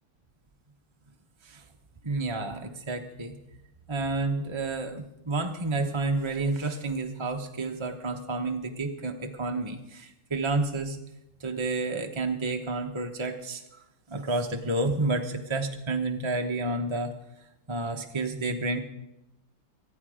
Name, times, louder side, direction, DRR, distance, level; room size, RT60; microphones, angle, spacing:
voice 1, 2.0-3.3 3.9-11.0 11.4-13.6 14.1-17.1 17.4-18.8, right 2 dB, 25° right, 3 dB, 0.7 m, -30 dB
24.0 x 9.7 x 4.9 m, 0.90 s
omnidirectional pair, 1.7 m